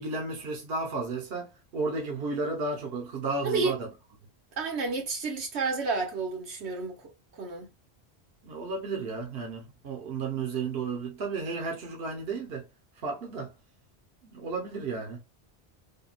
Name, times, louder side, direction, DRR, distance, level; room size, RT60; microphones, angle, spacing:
voice 1, 0.0-3.9 8.4-12.6 13.0-13.5 14.2-15.2, right 4 dB, 65° right, 1.1 m, -33 dB
voice 2, 3.4-3.8 4.6-7.0 7.3-7.7, right 4 dB, 85° right, 1.3 m, -30 dB
3.6 x 2.2 x 2.3 m
omnidirectional pair, 1.1 m